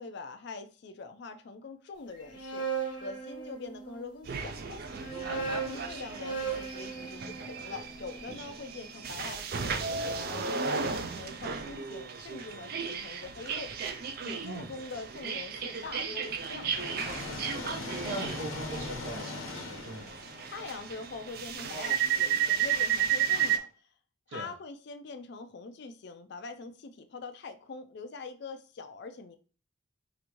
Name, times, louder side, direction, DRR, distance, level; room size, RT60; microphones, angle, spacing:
voice 1, 0.0-2.7 2.9-4.8 5.3-13.7 14.2-16.9 20.5-23.7 24.3-29.4, left 4 dB, 55° left, 9 dB, 0.4 m, -43 dB
sound 1, 2.1-4.0 4.8-8.9, right 5 dB, 25° left, 1.2 m, -38 dB
sound 2, 4.3-23.6, right 7 dB, 50° right, 0.4 m, -34 dB
sound 3, 15.6-21.5, left 3 dB, 90° left, 0.8 m, -41 dB
voice 2, 17.9-20.1 24.3-24.5, right 2 dB, 65° right, 3 dB, 0.8 m, -40 dB
4.9 x 2.5 x 2.9 m, 0.39 s
head